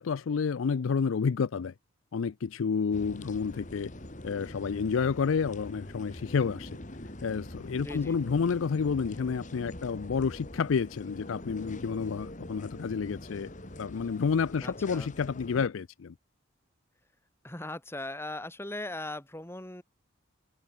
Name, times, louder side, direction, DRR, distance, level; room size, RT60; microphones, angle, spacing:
voice 1, 0.0-1.7 2.1-3.9 4.2-6.7 7.2-13.5 13.8-16.1, left 5 dB, 80° left, 0.4 m, -30 dB
sound 1, 2.9-15.7, left 1 dB, 40° left, 2.4 m, -44 dB
voice 2, 7.8-8.2 14.6-15.1 17.4-19.8, left 1 dB, 10° left, 2.3 m, -39 dB
head